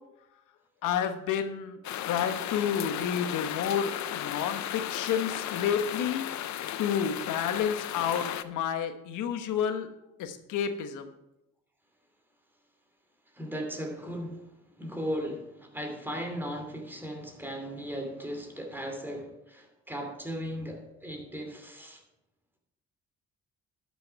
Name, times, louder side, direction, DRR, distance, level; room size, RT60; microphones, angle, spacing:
voice 1, 0.8-1.8 2.0-6.3 6.8-9.9 10.2-11.1, left 8 dB, 85° left, 8 dB, 1.1 m, -30 dB
sound 1, 1.8-8.4, left 11 dB, 70° left, 0.6 m, -35 dB
voice 2, 13.3-14.4 14.8-22.0, equal, 5° right, 3 dB, 2.7 m, -37 dB
12.0 x 6.9 x 4.6 m, 0.90 s
cardioid pair, 90°, 30 cm